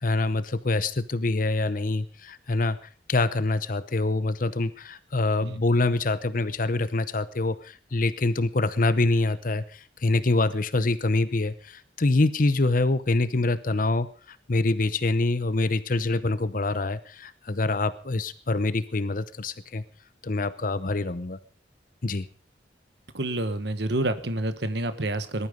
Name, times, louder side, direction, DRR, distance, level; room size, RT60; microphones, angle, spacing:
voice 1, 0.0-19.8 20.2-21.4 22.0-22.3, left 2 dB, 45° left, 15 dB, 0.8 m, -25 dB
voice 2, 23.1-25.5, right 1 dB, 65° right, 11 dB, 1.4 m, -28 dB
20.0 x 12.5 x 5.2 m, 0.39 s
head